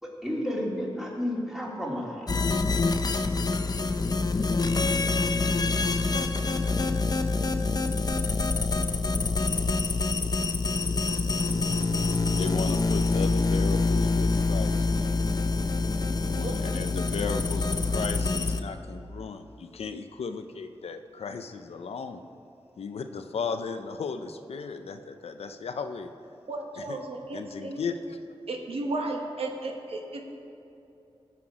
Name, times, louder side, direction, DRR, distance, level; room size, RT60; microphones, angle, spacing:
voice 1, 0.0-2.3, left 1 dB, 5° right, -4 dB, 2.5 m, -32 dB
sound 1, 2.3-18.6, left 3 dB, 40° left, 0.6 m, -26 dB
voice 2, 12.3-15.2 16.2-22.2 22.8-26.1 26.8-27.0 27.3-28.2, left 5 dB, 90° left, 8 dB, 0.6 m, -35 dB
voice 3, 26.5-27.8 28.5-30.2, right 2 dB, 75° right, 1 dB, 1.3 m, -34 dB
17.5 x 5.9 x 5.0 m, 2.8 s
wide cardioid pair, 80°, 10 cm